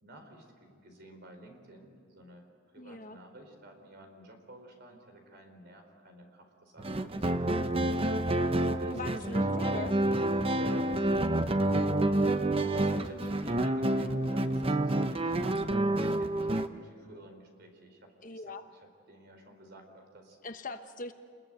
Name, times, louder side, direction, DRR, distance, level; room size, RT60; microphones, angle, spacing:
voice 1, 0.0-2.5 2.7-7.7 8.4-9.4 10.5-11.2 12.6-18.4 19.1-20.4, right 1 dB, 50° right, 4 dB, 4.4 m, -51 dB
voice 2, 2.8-3.2 8.9-10.0 12.0-12.2 18.2-18.7 20.4-21.1, left 3 dB, 40° left, 7 dB, 1.1 m, -41 dB
sound 1, 6.8-16.7, right 1 dB, 25° right, 0.8 m, -28 dB
28.5 x 21.0 x 9.1 m, 2.2 s
head